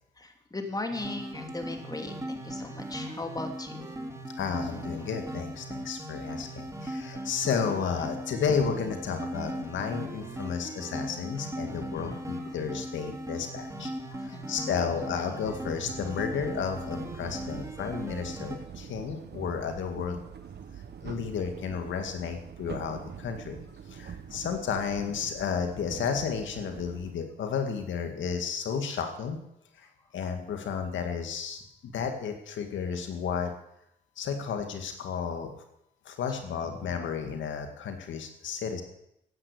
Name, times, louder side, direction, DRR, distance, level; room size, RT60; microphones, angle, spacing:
voice 1, 0.2-3.9 6.8-7.2 10.4-10.5 11.6-12.2 14.1-14.7 28.9-29.0, left 2 dB, 20° left, 5 dB, 2.7 m, -38 dB
sound 1, 0.9-18.6, right 1 dB, 15° right, 3.0 m, -38 dB
voice 2, 4.4-13.9 14.2-20.2 21.0-23.6 23.9-29.4 29.8-29.9 30.1-31.6 31.9-33.5 34.2-35.5 36.1-38.8, left 6 dB, 85° left, 6 dB, 2.1 m, -32 dB
sound 2, 15.4-27.1, right 7 dB, 60° right, 1.4 m, -44 dB
15.0 x 9.8 x 8.4 m, 0.80 s
cardioid pair, 85°, 19 cm